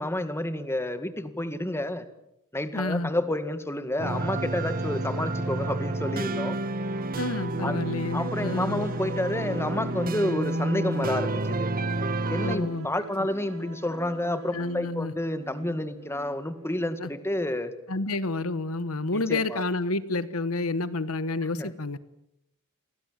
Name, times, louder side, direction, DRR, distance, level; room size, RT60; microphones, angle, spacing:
voice 1, 0.0-2.1 2.5-6.6 7.6-7.8 8.1-11.7 12.3-17.7 19.1-19.6 21.6-21.7, left 1 dB, 10° left, 10 dB, 2.0 m, -30 dB
voice 2, 2.7-3.1 7.2-8.9 12.4-12.9 14.5-15.1 17.0-17.1 17.9-22.0, left 2 dB, 70° left, 15 dB, 1.2 m, -29 dB
sound 1, 2.9-16.8, right 1 dB, 75° right, 5.9 m, -47 dB
sound 2, 4.0-12.6, right 2 dB, 40° right, 1.7 m, -30 dB
29.5 x 23.5 x 7.5 m, 0.81 s
head